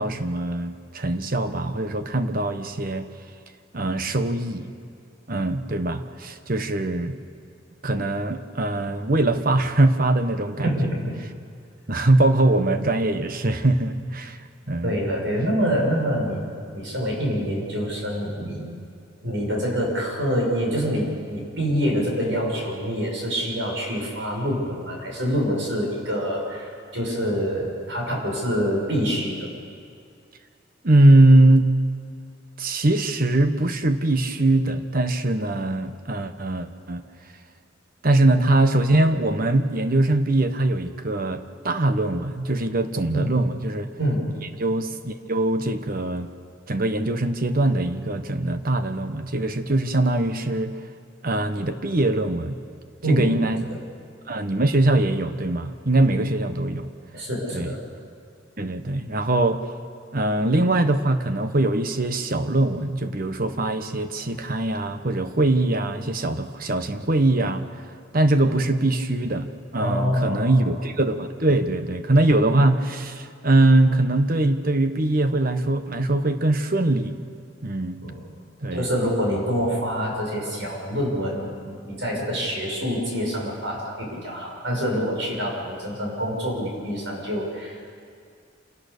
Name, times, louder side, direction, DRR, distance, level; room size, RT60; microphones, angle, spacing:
voice 1, 0.0-3.1 3.7-4.7 5.3-7.2 7.8-10.9 11.9-14.4 14.7-15.0 30.8-31.7 32.6-37.0 38.0-43.9 44.6-46.3 46.7-50.8 51.2-52.6 53.1-53.8 54.3-56.9 57.5-57.7 58.6-59.6 60.1-67.6 68.1-77.1 77.6-78.0 78.6-78.9, right 2 dB, 50° right, 9 dB, 1.2 m, -22 dB
voice 2, 10.6-11.2 14.8-16.5 16.7-18.7 19.2-29.5 43.1-43.4 44.0-44.3 53.0-53.3 57.1-57.8 69.8-70.7 78.0-78.2 78.7-87.9, equal, 70° right, -1 dB, 6.2 m, -26 dB
27.0 x 17.5 x 6.8 m, 2.3 s
head